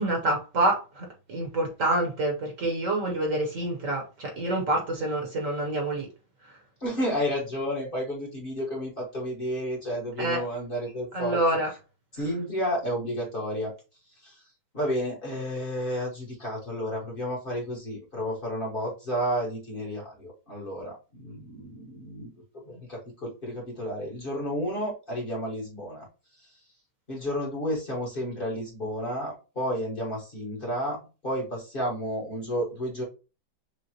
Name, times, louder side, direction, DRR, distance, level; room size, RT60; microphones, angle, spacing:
voice 1, 0.0-6.1 6.4-6.6 10.2-10.4 11.1-11.7, right 2 dB, 50° right, 1.4 m, -27 dB
voice 2, 6.8-11.4 12.1-13.7 14.2-14.4 14.7-26.1 26.4-26.5 27.1-33.0, equal, 35° left, 1.4 m, -31 dB
6.4 x 2.4 x 2.9 m
omnidirectional pair, 1.8 m